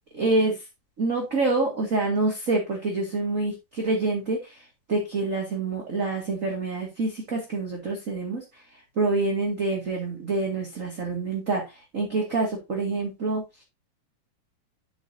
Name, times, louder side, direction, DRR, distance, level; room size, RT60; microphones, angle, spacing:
voice 1, 0.1-0.6 1.0-13.6, right 3 dB, 30° right, -1 dB, 2.0 m, -27 dB
10.0 x 7.8 x 2.7 m, 0.24 s
omnidirectional pair, 3.8 m